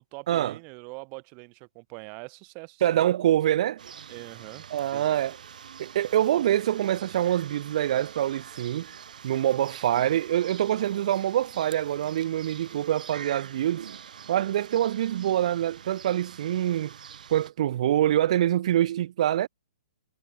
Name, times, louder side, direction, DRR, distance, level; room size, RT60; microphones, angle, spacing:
voice 1, 0.0-3.0 4.1-4.7 4.9-5.2, right 37 dB, 30° right, 2.2 m, -43 dB
voice 2, 2.8-3.8 4.7-5.3 5.8-8.9 9.2-13.9 14.3-16.9 17.3-19.5, right 12 dB, 55° right, 1.7 m, -25 dB
sound 1, 3.8-17.5, right 8 dB, 75° right, 1.7 m, -46 dB
hypercardioid pair, 145°, 4 cm